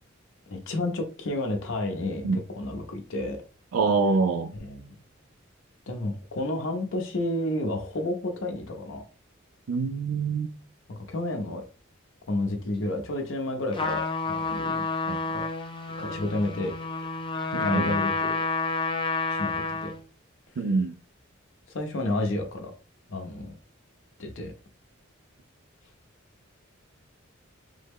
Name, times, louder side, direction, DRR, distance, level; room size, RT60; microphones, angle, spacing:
voice 1, 0.5-3.4 4.5-5.0 5.9-9.0 10.9-11.6 12.3-14.9 15.3-15.5 16.0-16.7 17.6-18.4 19.3-19.9 21.7-22.7 23.1-23.5 24.2-24.5, left 1 dB, 65° left, 0.6 m, -31 dB
voice 2, 3.7-4.5 9.7-10.5 15.1-15.2 17.5-18.0 20.6-21.0, right 4 dB, 85° right, 0.4 m, -25 dB
Trumpet, 13.7-20.0, left 3 dB, 25° left, 0.4 m, -29 dB
3.4 x 2.1 x 3.5 m
head